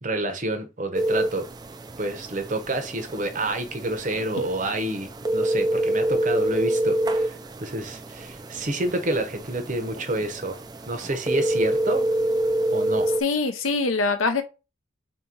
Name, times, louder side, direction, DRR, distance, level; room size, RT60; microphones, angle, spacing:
voice 1, 0.0-1.5 2.0-7.3 7.6-10.6 10.9-12.1 12.7-13.1, right 2 dB, 35° right, 0.7 m, -28 dB
sound 1, 0.9-13.2, right 1 dB, 20° right, 0.3 m, -27 dB
voice 2, 13.2-14.4, left 3 dB, 75° left, 0.7 m, -23 dB
3.9 x 2.8 x 3.8 m
head